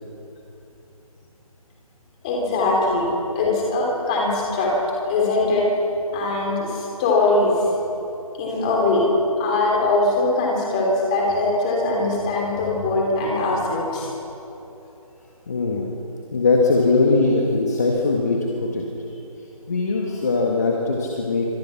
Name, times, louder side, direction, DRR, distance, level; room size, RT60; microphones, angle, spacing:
voice 1, 2.2-3.1 3.3-4.7 5.1-5.7 6.1-7.5 8.4-9.1 9.4-14.1, left 2 dB, 10° left, -2 dB, 3.4 m, -21 dB
voice 2, 15.5-15.9 16.3-18.8 19.7-21.5, left 3 dB, 25° left, -1 dB, 1.9 m, -20 dB
26.5 x 26.0 x 6.0 m, 2.9 s
figure-of-eight pair, 165°, 19 cm